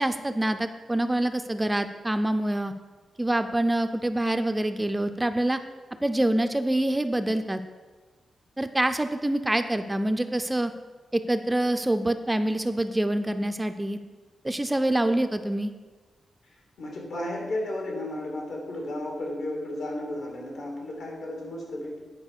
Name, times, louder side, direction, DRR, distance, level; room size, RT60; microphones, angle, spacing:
voice 1, 0.0-2.7 3.2-5.6 6.0-7.6 8.6-10.7 11.1-14.0 14.4-15.7, right 1 dB, 10° right, 9 dB, 0.3 m, -26 dB
voice 2, 16.8-22.0, left 1 dB, 75° left, -1 dB, 2.5 m, -33 dB
9.5 x 5.0 x 6.6 m, 1.4 s
wide cardioid pair, 170°, 0 cm